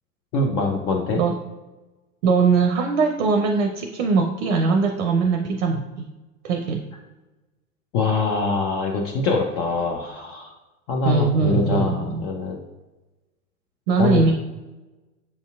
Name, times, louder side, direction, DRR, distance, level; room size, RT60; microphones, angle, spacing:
voice 1, 0.3-1.2 7.9-10.5 10.9-12.6 14.0-14.2, left 4 dB, 35° left, 1 dB, 0.4 m, -24 dB
voice 2, 2.2-6.1 6.4-6.8 11.1-12.2 13.9-14.3, right 4 dB, 55° right, 4 dB, 0.5 m, -21 dB
6.8 x 2.6 x 2.3 m, 1.1 s
figure-of-eight pair, 85°, 42 cm